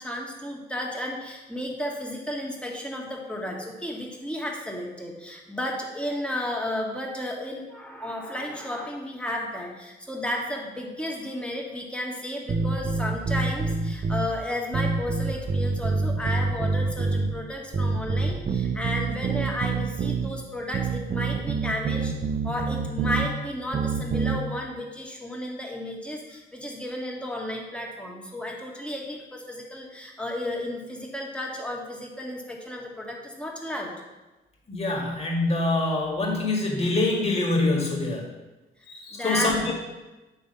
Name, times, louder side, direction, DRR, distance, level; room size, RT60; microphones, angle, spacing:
voice 1, 0.0-22.1 22.4-33.9 39.1-39.7, left 1 dB, 5° left, -1 dB, 1.6 m, -33 dB
sound 1, 12.5-14.3 14.7-17.3 17.7-20.3 20.7-23.3 23.7-24.4, right 4 dB, 40° right, 0.6 m, -26 dB
voice 2, 34.7-38.2 38.9-39.7, left 2 dB, 30° left, -1 dB, 1.8 m, -25 dB
8.5 x 3.4 x 5.3 m, 1.1 s
cardioid pair, 90°, 20 cm